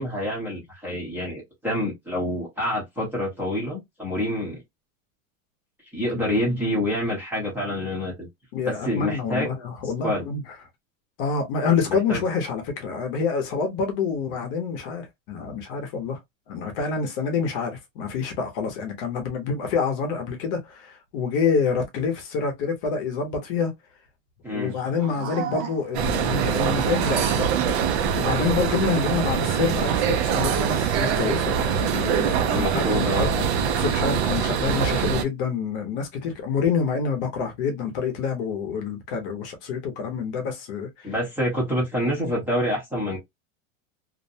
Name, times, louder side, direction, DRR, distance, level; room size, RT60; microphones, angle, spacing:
voice 1, 0.0-4.6 5.9-8.3 8.6-9.5 10.0-10.2 12.1-12.2 24.4-24.8 32.5-33.3 41.0-43.2, left 1 dB, 5° right, 0.7 m, -27 dB
voice 2, 8.5-10.4 11.2-16.2 16.5-23.7 24.5-27.7 28.2-33.3 33.8-41.1, left 5 dB, 45° left, 0.7 m, -27 dB
sound 1, 24.7-26.1 26.6-28.2, right 8 dB, 70° right, 0.9 m, -34 dB
sound 2, 25.9-35.2, right 7 dB, 55° right, 0.5 m, -23 dB
2.5 x 2.1 x 2.6 m
supercardioid pair, 175°, 40 cm